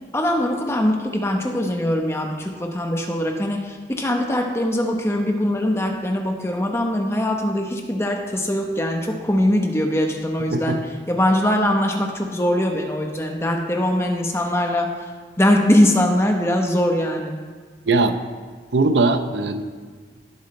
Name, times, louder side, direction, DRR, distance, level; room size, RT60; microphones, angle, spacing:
voice 1, 0.1-14.9 15.4-17.4, left 1 dB, 15° left, 2 dB, 1.0 m, -21 dB
voice 2, 18.7-19.6, right 3 dB, 85° right, 9 dB, 0.8 m, -19 dB
18.5 x 8.3 x 3.3 m, 1.5 s
head